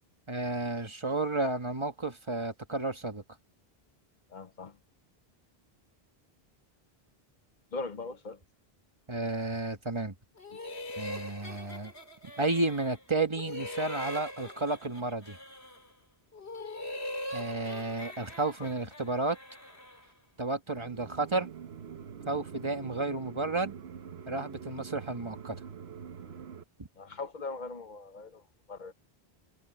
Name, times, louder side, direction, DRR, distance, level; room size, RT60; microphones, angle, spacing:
voice 1, 0.3-3.2 9.1-10.1 11.0-11.9 12.4-15.4 17.3-19.4 20.4-21.5 22.3-23.7 24.3-25.5 26.8-26.9, right 3 dB, 30° right, 1.5 m, -32 dB
voice 2, 4.3-4.8 7.7-8.4 27.0-28.4 28.7-28.9, left 3 dB, 50° left, 1.2 m, -40 dB
sound 1, 10.4-13.0 13.3-15.9 16.3-20.1, left 1 dB, 85° left, 4.0 m, -41 dB
sound 2, 20.7-26.6, right 7 dB, 85° right, 1.3 m, -45 dB
omnidirectional pair, 1.1 m